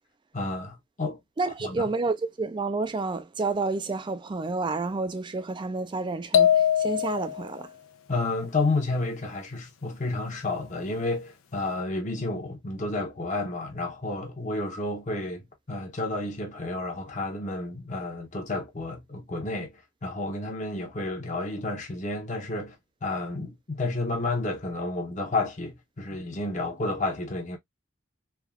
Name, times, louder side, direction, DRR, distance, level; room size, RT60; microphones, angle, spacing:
voice 1, 0.3-1.2 1.6-1.8 8.1-19.7 20.0-22.8 23.0-27.6, left 2 dB, 35° left, 0.8 m, -31 dB
voice 2, 1.4-7.7, right 3 dB, 20° right, 0.3 m, -30 dB
sound 1, 6.3-7.5, left 9 dB, 85° left, 0.5 m, -22 dB
3.3 x 2.3 x 2.3 m
head